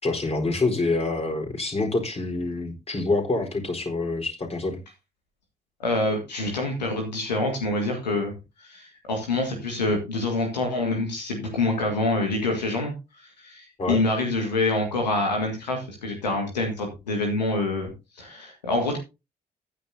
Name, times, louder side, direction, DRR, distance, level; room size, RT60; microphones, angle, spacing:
voice 1, 0.0-4.8 13.8-14.0, left 3 dB, 30° left, 4.2 m, -26 dB
voice 2, 5.8-8.3 8.6-17.9 18.2-19.0, left 2 dB, 90° left, 1.9 m, -26 dB
14.5 x 10.0 x 2.7 m
figure-of-eight pair, 40°, 21 cm